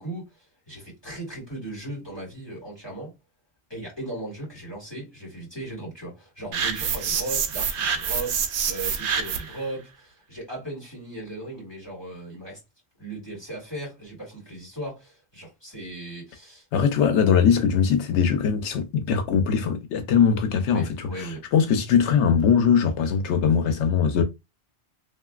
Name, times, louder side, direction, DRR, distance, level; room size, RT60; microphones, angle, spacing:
voice 1, 0.0-3.1 3.7-12.6 13.0-16.7 20.7-21.4, right 2 dB, 20° left, 1.9 m, -37 dB
sound 1, 6.5-9.6, right 6 dB, 85° right, 0.9 m, -27 dB
voice 2, 16.7-24.2, left 7 dB, 85° left, 0.9 m, -21 dB
2.9 x 2.5 x 2.3 m
omnidirectional pair, 1.2 m